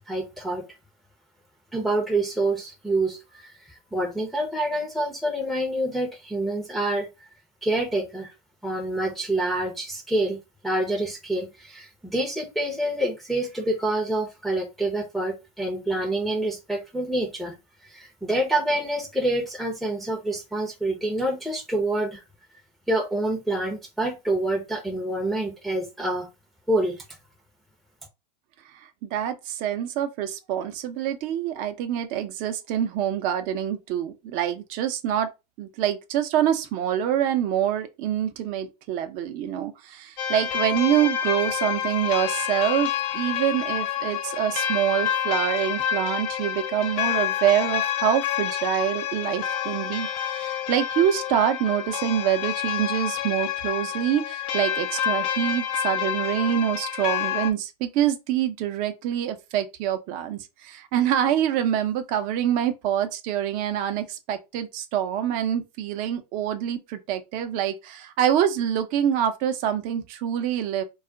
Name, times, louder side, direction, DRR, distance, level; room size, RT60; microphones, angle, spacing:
voice 1, 0.1-0.7 1.7-7.3 7.6-8.3 8.6-17.6 17.8-22.2 22.9-26.3 26.7-27.0, right 1 dB, ahead, 0.6 m, -27 dB
voice 2, 28.7-35.3 35.6-70.8, right 10 dB, 40° right, 0.6 m, -26 dB
sound 1, 40.2-57.5, left 10 dB, 55° left, 0.5 m, -28 dB
2.4 x 2.1 x 3.7 m
hypercardioid pair, 115°, 20 cm